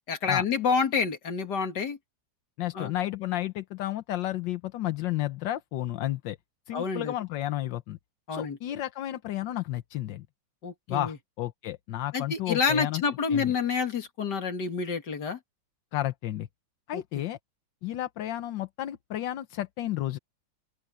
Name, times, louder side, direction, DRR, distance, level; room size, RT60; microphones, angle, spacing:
voice 1, 0.1-2.0 2.7-2.9 6.7-7.1 8.3-8.6 10.6-11.2 12.1-15.4 16.9-17.0, left 5 dB, 60° left, 2.6 m, -28 dB
voice 2, 2.6-6.4 6.7-8.0 8.3-10.3 10.9-13.0 13.3-13.5 15.9-16.5 16.9-17.4 17.8-20.2, left 14 dB, 75° left, 1.5 m, -32 dB
open air
omnidirectional pair, 2.1 m